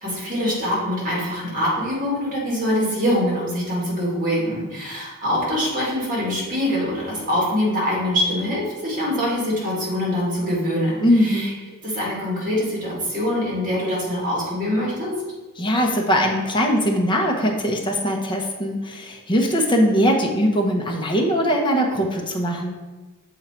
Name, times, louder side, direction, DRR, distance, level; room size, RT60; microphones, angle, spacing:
voice 1, 0.0-11.5 11.8-15.2, equal, 40° right, -5 dB, 2.1 m, -24 dB
voice 2, 11.0-11.5 15.6-22.8, equal, 20° left, 0 dB, 0.9 m, -21 dB
6.9 x 3.7 x 4.4 m, 1.2 s
head